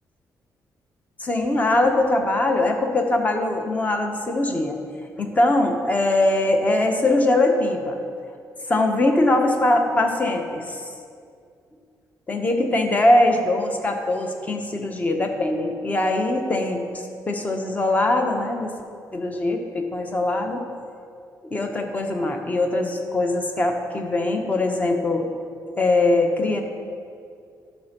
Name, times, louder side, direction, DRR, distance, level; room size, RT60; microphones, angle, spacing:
voice 1, 1.2-4.8 5.2-8.0 8.7-10.8 12.3-18.7 19.1-20.6 21.4-25.3 25.8-26.6, left 2 dB, 20° left, 4 dB, 0.9 m, -22 dB
11.5 x 4.4 x 5.9 m, 2.3 s
cardioid pair, 130°, 7 cm